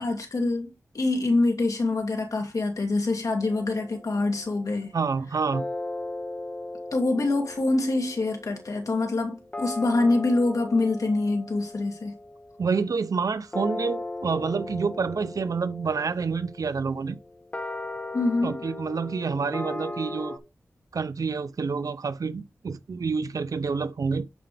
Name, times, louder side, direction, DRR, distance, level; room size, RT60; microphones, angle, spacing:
voice 1, 0.0-4.9 6.9-12.2 18.1-18.6, left 2 dB, 70° left, 2.5 m, -25 dB
sound 1, 3.4-4.7 5.5-20.4, left 2 dB, 25° left, 1.4 m, -38 dB
voice 2, 4.9-5.7 12.6-17.2 18.4-20.4 20.9-24.2, right 5 dB, 75° right, 0.7 m, -28 dB
11.5 x 5.2 x 3.4 m
wide cardioid pair, 80°, 6 cm